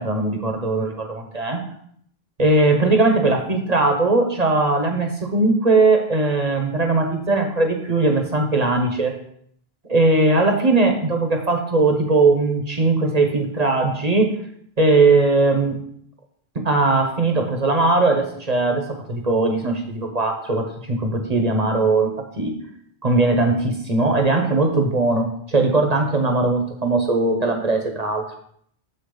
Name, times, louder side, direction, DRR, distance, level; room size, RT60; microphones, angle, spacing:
voice 1, 0.0-1.6 2.4-9.1 9.9-14.3 14.8-15.8 16.6-22.1 22.4-22.6 23.0-28.2, right 3 dB, 40° right, 3 dB, 1.1 m, -19 dB
7.5 x 6.6 x 3.9 m, 0.66 s
omnidirectional pair, 1.1 m